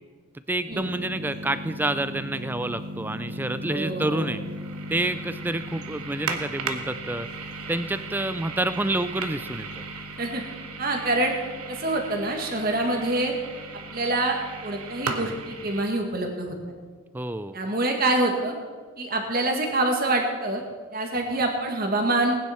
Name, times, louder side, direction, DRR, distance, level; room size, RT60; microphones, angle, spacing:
voice 1, 0.5-4.4 4.9-7.3 7.7-9.8 17.1-17.5, right 2 dB, 10° right, 12 dB, 0.4 m, -28 dB
sound 1, 0.7-15.8, right 2 dB, 85° right, 1.2 m, -36 dB
voice 2, 3.7-4.3 10.2-10.4 10.8-11.3 11.7-13.3 13.9-16.6 17.5-18.6 19.0-20.6 20.9-22.4, right 2 dB, 40° right, 3 dB, 1.8 m, -26 dB
19.0 x 9.8 x 4.4 m, 1.5 s
head